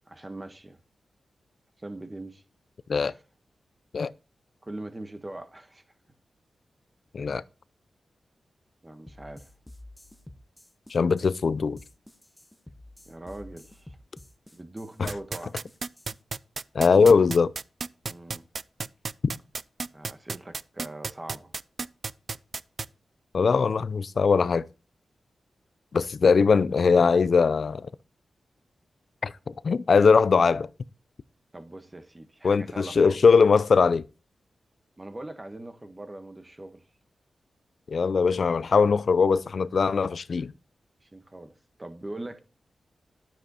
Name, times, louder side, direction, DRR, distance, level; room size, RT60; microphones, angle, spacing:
voice 1, 0.1-0.8 1.8-2.4 3.1-3.2 4.0-4.1 4.6-5.8 8.8-9.5 13.0-14.0 14.5-15.6 18.0-18.5 19.9-21.5 26.2-26.3 31.5-33.2 35.0-36.8 41.0-41.5 41.8-42.4, right 1 dB, 15° right, 1.3 m, -41 dB
sound 1, 9.1-16.2, left 1 dB, 5° left, 1.0 m, -49 dB
voice 2, 10.9-11.8 15.0-15.1 16.7-17.5 23.3-24.7 25.9-27.9 29.2-30.7 32.4-34.0 37.9-40.5, left 5 dB, 55° left, 0.5 m, -21 dB
sound 2, 15.1-22.8, right 4 dB, 45° right, 0.4 m, -32 dB
12.5 x 7.5 x 4.3 m
wide cardioid pair, 150°, 0 cm